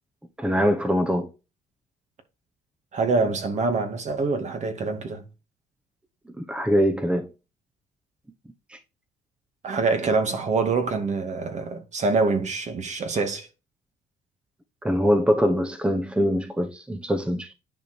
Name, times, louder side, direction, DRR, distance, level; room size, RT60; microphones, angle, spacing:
voice 1, 0.4-1.3 6.4-7.3 8.7-8.8 14.8-17.5, equal, 5° right, 1.2 m, -23 dB
voice 2, 2.9-5.2 9.6-13.5, right 4 dB, 45° right, 2.3 m, -25 dB
10.0 x 5.2 x 4.5 m
cardioid pair, 110°, 17 cm